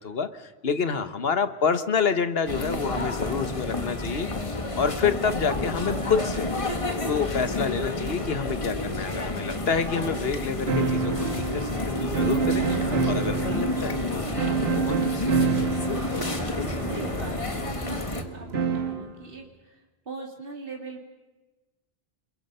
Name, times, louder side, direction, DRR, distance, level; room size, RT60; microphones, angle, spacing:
voice 1, 0.0-6.5 7.1-15.6, left 6 dB, 70° left, 12 dB, 1.4 m, -28 dB
sound 1, 2.5-18.2, left 2 dB, 30° left, 1.7 m, -30 dB
sound 2, 10.7-19.1, right 4 dB, 80° right, 2.1 m, -28 dB
voice 2, 16.8-19.8 20.1-21.0, right 4 dB, 60° right, 2 dB, 2.8 m, -41 dB
29.0 x 22.5 x 5.5 m, 1.2 s
omnidirectional pair, 1.1 m